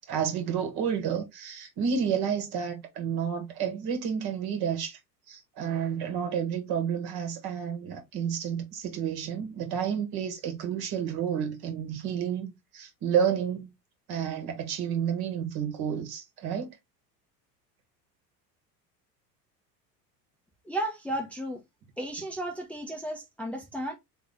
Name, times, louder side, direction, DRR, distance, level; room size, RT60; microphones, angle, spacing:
voice 1, 0.1-5.0 5.3-13.7 14.1-16.8, right 8 dB, 50° right, 1.8 m, -30 dB
voice 2, 20.6-21.6 22.0-23.9, right 1 dB, 5° left, 0.8 m, -34 dB
4.0 x 3.4 x 3.5 m
hypercardioid pair, 75°, 49 cm